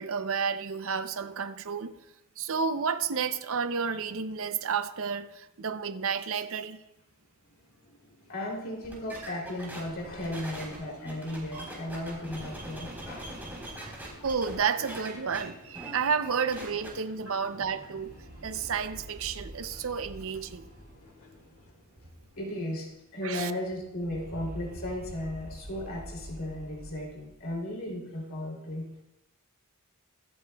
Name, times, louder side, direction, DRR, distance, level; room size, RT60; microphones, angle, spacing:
voice 1, 0.0-1.9 2.4-6.8 13.8-13.9 14.2-18.1 18.4-20.7 23.2-23.5, right 6 dB, 65° right, 0.6 m, -31 dB
sound 1, 6.8-23.5, left 1 dB, 80° left, 1.9 m, -55 dB
voice 2, 8.3-13.3 17.2-17.4 22.4-28.9, left 1 dB, 65° left, 3.1 m, -35 dB
sound 2, 8.8-14.6 14.8-15.4 15.7-15.9 16.2-16.9, right 1 dB, 10° right, 3.8 m, -42 dB
sound 3, 17.5-22.7 22.9-23.0 23.3-27.6, right 1 dB, 40° right, 0.8 m, -47 dB
24.5 x 8.2 x 2.3 m
head